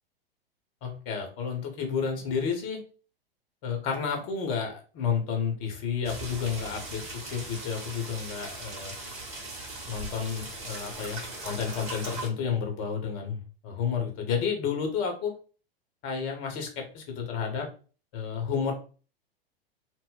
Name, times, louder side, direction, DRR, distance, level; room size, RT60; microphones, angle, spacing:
voice 1, 0.8-2.8 3.6-7.0 7.3-8.9 9.9-15.3 16.0-17.7 18.1-18.7, left 6 dB, 40° left, 3 dB, 1.0 m, -31 dB
sound 1, 6.0-12.3, right 2 dB, 20° right, 1.0 m, -39 dB
2.2 x 2.0 x 3.8 m, 0.37 s
figure-of-eight pair, 95°, 30 cm